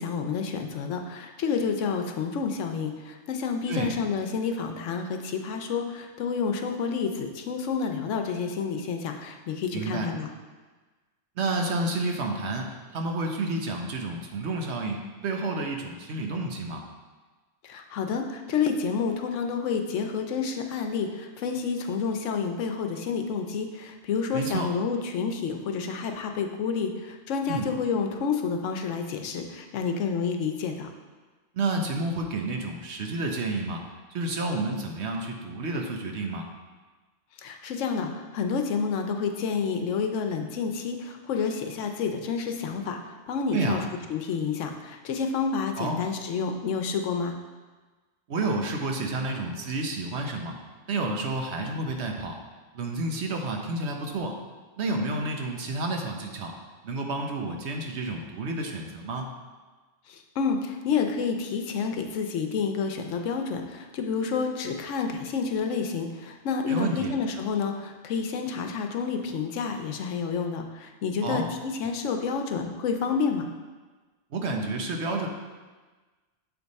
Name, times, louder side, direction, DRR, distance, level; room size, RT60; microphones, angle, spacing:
voice 1, 0.0-10.3 17.6-30.9 37.4-43.0 43.3-43.8 44.1-47.3 60.1-73.5, left 5 dB, 80° left, 5 dB, 1.0 m, -29 dB
voice 2, 9.7-10.1 11.4-16.8 24.3-24.7 27.5-27.7 31.5-33.8 34.1-36.5 43.5-43.8 45.8-46.0 48.3-50.5 50.9-52.4 52.7-54.4 54.8-56.5 56.8-59.3 66.7-67.1 71.2-71.5 74.3-75.3, right 2 dB, 65° right, 2 dB, 1.0 m, -30 dB
7.9 x 3.4 x 4.1 m, 1.3 s
omnidirectional pair, 1.3 m